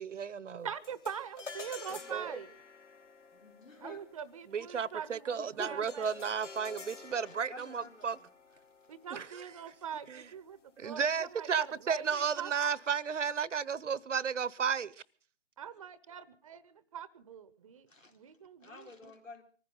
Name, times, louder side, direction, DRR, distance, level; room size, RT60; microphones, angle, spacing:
voice 1, 0.0-0.7 2.1-2.3 4.5-8.2 9.1-9.4 10.1-10.2 10.8-14.9, right 6 dB, 70° right, 0.9 m, -33 dB
voice 2, 0.6-2.5 3.8-6.1 8.9-12.5 15.6-19.1, right 8 dB, 25° right, 0.8 m, -43 dB
sound 1, 0.8-10.3, left 4 dB, 70° left, 2.6 m, -50 dB
voice 3, 3.3-4.0 5.4-5.9 7.0-7.1 7.5-8.3 17.9-18.1 18.6-19.4, left 2 dB, 90° left, 4.1 m, -49 dB
24.5 x 15.0 x 3.9 m
figure-of-eight pair, 140°, 38 cm